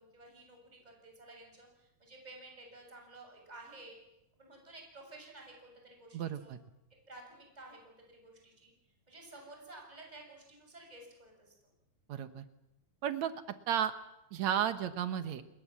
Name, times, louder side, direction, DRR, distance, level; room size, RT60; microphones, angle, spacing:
voice 1, 0.0-4.0 4.4-6.5 7.1-8.7 9.1-11.6, right 2 dB, 10° right, 1 dB, 6.6 m, -53 dB
voice 2, 6.1-6.6 12.1-12.5 13.0-13.3 13.7-13.9 14.3-15.4, right 9 dB, 65° right, 11 dB, 1.9 m, -33 dB
29.5 x 21.0 x 7.5 m, 0.89 s
omnidirectional pair, 4.5 m